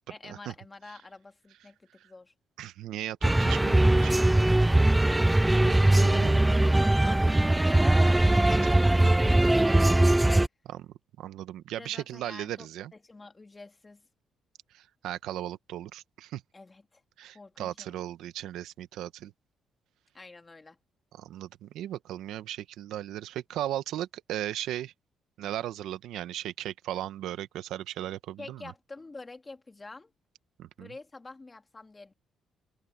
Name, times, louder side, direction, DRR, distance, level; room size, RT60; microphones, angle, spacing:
voice 1, 0.1-2.3 6.6-10.2 11.8-14.0 16.5-17.0 17.3-18.1 20.1-20.8 28.4-30.1 30.8-32.1, left 3 dB, 25° left, 2.3 m, -48 dB
voice 2, 2.6-4.1 5.6-6.4 8.6-8.7 10.6-10.9 11.2-12.9 14.7-16.4 17.2-19.3 21.2-24.9 25.4-28.7 30.6-30.9, right 12 dB, 85° right, 1.1 m, -37 dB
sound 1, 3.2-10.5, right 1 dB, 10° right, 0.4 m, -21 dB
cardioid pair, 90°, 0 cm